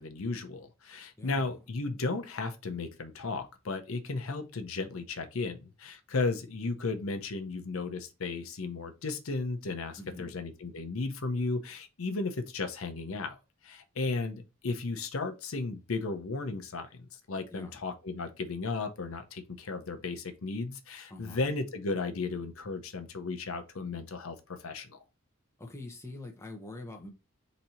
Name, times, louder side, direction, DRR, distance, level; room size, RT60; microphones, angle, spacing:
voice 1, 0.0-17.0 17.3-25.0, left 3 dB, 80° left, 0.7 m, -35 dB
voice 2, 1.2-1.5 10.0-10.4 17.5-17.8 21.1-21.4 25.6-27.1, left 2 dB, 15° left, 0.8 m, -44 dB
4.1 x 2.8 x 4.3 m
head